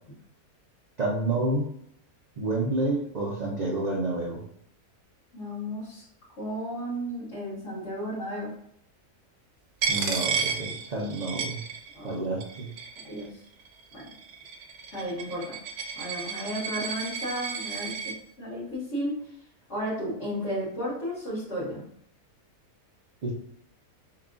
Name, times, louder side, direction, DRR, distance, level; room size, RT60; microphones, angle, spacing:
voice 1, 1.0-1.7 2.4-4.4 9.9-11.6 12.0-12.7 23.2-23.3, right 2 dB, 85° right, -5 dB, 0.3 m, -29 dB
voice 2, 5.3-6.0 6.4-8.5 11.9-12.2 13.0-13.4 13.9-14.0 14.9-15.6 15.9-19.1 19.7-21.9, equal, 50° left, -10 dB, 1.5 m, -33 dB
Coin (dropping), 9.8-12.1 12.4-13.2 13.9-18.1, right 6 dB, 70° right, 1.1 m, -32 dB
5.6 x 2.3 x 2.5 m, 0.69 s
omnidirectional pair, 1.7 m